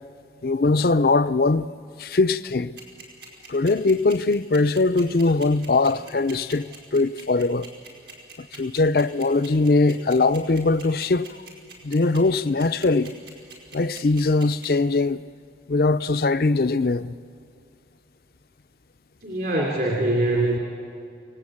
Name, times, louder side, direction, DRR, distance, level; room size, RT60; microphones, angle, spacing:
voice 1, 0.4-1.7 2.0-2.7 3.5-7.7 8.5-11.4 11.8-13.1 13.7-15.2 15.7-17.1, left 3 dB, 55° left, 0.5 m, -21 dB
sound 1, 2.8-14.7, right 6 dB, 85° right, 4.7 m, -43 dB
voice 2, 19.2-20.6, right 1 dB, 55° right, 2.9 m, -23 dB
28.0 x 18.5 x 8.7 m
head